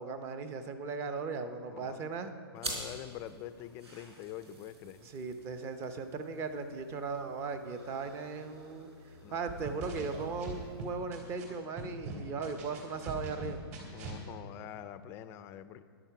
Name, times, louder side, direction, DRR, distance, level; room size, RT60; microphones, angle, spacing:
voice 1, 0.0-2.3 5.0-8.9 9.3-13.6, right 4 dB, 20° right, 9 dB, 0.7 m, -38 dB
voice 2, 1.7-2.0 2.5-5.1 9.2-10.0 13.9-15.8, left 11 dB, 20° left, 12 dB, 0.4 m, -46 dB
sound 1, 2.6-11.5, right 2 dB, 90° right, 4.0 m, -48 dB
sound 2, 9.5-11.4 11.8-14.2, right 3 dB, 40° right, 3.1 m, -41 dB
13.5 x 10.5 x 5.9 m, 2.3 s
hypercardioid pair, 155°, 13 cm